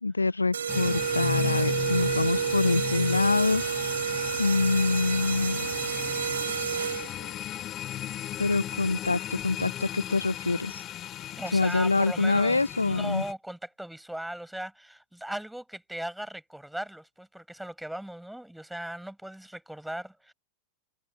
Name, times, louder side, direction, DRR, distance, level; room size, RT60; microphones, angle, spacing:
voice 1, 0.0-3.9 4.4-5.7 8.4-10.8 11.5-13.2, left 3 dB, 80° left, 1.1 m, -25 dB
sound 1, 0.5-7.3, right 7 dB, 70° right, 0.7 m, -30 dB
sound 2, 0.7-13.3, left 12 dB, 30° left, 3.4 m, -36 dB
voice 2, 11.4-20.3, right 1 dB, ahead, 6.5 m, -38 dB
figure-of-eight pair, 90°, 0 cm